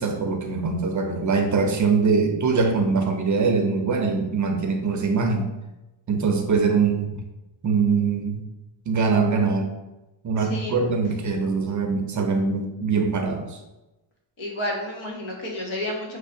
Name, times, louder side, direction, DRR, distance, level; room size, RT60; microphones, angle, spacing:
voice 1, 0.0-5.5 6.1-7.2 7.6-8.4 8.9-9.7 10.2-13.6, right 4 dB, 40° right, 4 dB, 0.5 m, -23 dB
voice 2, 10.4-10.9 14.4-16.2, left 1 dB, 75° left, -1 dB, 1.4 m, -31 dB
6.3 x 3.2 x 2.5 m, 1.0 s
cardioid pair, 140°, 49 cm